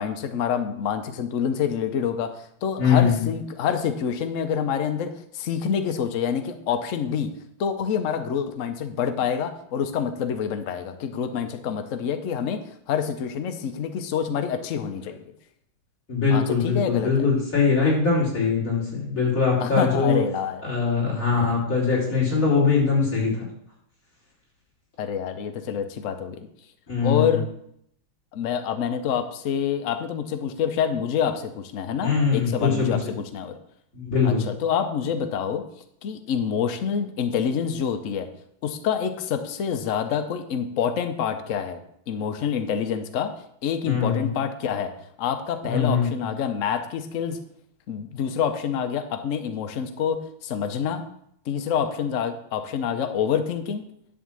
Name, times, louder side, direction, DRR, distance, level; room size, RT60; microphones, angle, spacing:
voice 1, 0.0-7.3 7.6-12.6 12.9-15.3 16.3-17.3 19.6-20.6 21.3-21.6 25.0-26.4 27.0-27.5 28.3-33.6 34.2-35.6 36.0-38.3 38.6-41.8 42.1-43.3 43.6-44.9 45.2-47.4 47.9-51.0 51.5-53.9, left 7 dB, 90° left, 8 dB, 0.6 m, -27 dB
voice 2, 2.8-3.2 16.1-20.2 20.6-23.5 26.9-27.4 32.0-33.0 33.9-34.4 43.9-44.3 45.6-46.2, left 5 dB, 35° left, -5 dB, 4.1 m, -22 dB
11.0 x 3.7 x 7.4 m, 0.71 s
omnidirectional pair, 2.4 m